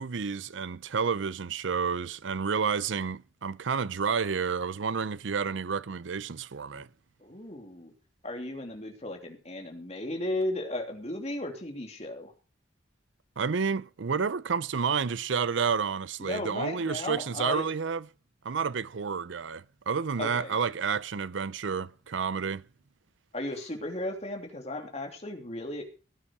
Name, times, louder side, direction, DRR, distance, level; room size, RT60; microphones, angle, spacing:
voice 1, 0.0-6.9 13.4-18.0 18.4-22.6, right 6 dB, 75° right, 0.6 m, -30 dB
voice 2, 7.2-7.9 8.2-12.3 16.2-17.7 20.2-20.6 23.3-25.8, left 1 dB, 35° left, 3.1 m, -35 dB
17.5 x 10.0 x 4.7 m
head